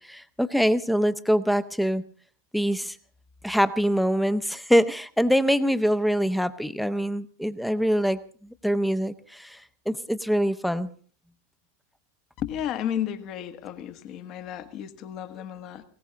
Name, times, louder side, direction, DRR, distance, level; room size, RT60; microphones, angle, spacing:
voice 1, 0.1-2.0 2.5-2.9 3.4-8.2 8.6-9.6 9.9-10.9, equal, ahead, 15 dB, 0.9 m, -24 dB
voice 2, 12.4-15.8, left 10 dB, 35° left, 10 dB, 1.5 m, -33 dB
20.5 x 18.0 x 3.9 m, 0.43 s
figure-of-eight pair, 90°, 0 cm